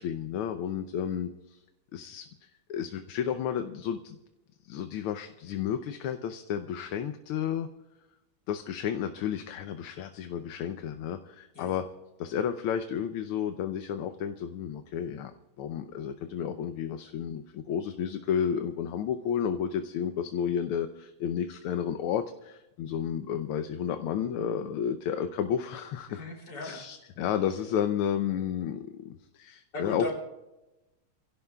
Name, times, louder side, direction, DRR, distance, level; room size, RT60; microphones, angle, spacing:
voice 1, 0.0-1.6 1.9-2.3 2.7-4.2 4.6-7.7 8.5-11.8 12.2-15.3 15.6-26.2 26.5-30.1, left 8 dB, 80° left, 7 dB, 1.6 m, -32 dB
voice 2, 26.1-26.8 29.7-30.1, left 2 dB, 55° left, 0 dB, 3.8 m, -36 dB
28.0 x 16.5 x 2.3 m, 1.0 s
omnidirectional pair, 2.4 m